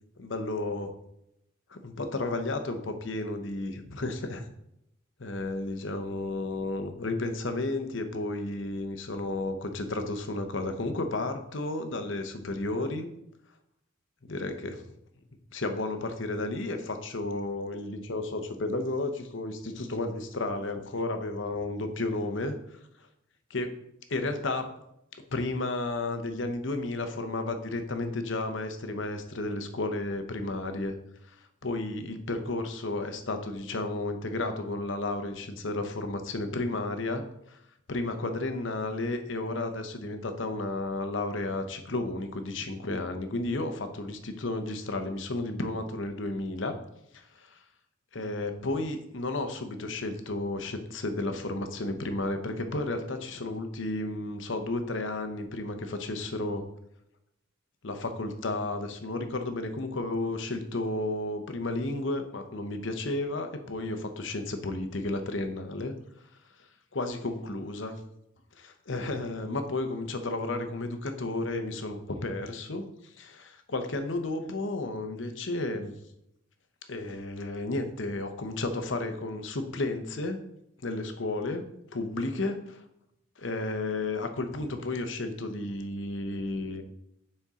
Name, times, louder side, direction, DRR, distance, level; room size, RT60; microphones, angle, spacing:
voice 1, 0.2-1.0 1.7-4.5 5.2-13.1 14.2-14.8 15.5-22.6 23.5-23.8 24.1-24.8 25.3-30.9 31.2-37.2 37.5-37.6 37.9-46.7 47.1-47.6 48.1-56.6 57.8-65.9 66.9-68.0 68.6-75.9 76.9-80.4 80.8-81.6 81.9-82.8 83.4-86.8, left 2 dB, 65° left, 7 dB, 0.9 m, -32 dB
9.7 x 4.4 x 3.7 m, 0.80 s
head